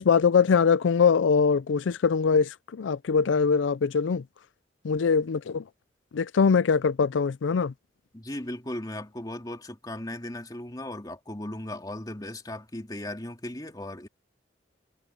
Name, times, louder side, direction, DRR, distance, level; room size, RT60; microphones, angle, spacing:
voice 1, 0.0-4.2 4.8-5.6 6.1-7.7, left 5 dB, 85° left, 0.4 m, -22 dB
voice 2, 8.1-14.1, left 1 dB, 20° left, 2.6 m, -37 dB
head